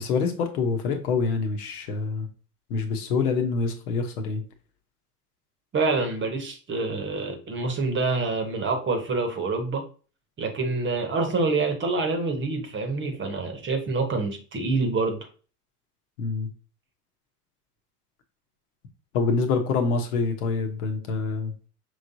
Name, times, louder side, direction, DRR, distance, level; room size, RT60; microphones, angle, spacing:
voice 1, 0.0-2.3 2.7-4.4 16.2-16.5 19.1-21.5, left 4 dB, 70° left, 5 dB, 1.1 m, -26 dB
voice 2, 5.7-9.8 10.4-15.3, right 3 dB, 25° right, 5 dB, 1.0 m, -26 dB
5.6 x 3.2 x 2.7 m, 0.39 s
hypercardioid pair, 95°, 47 cm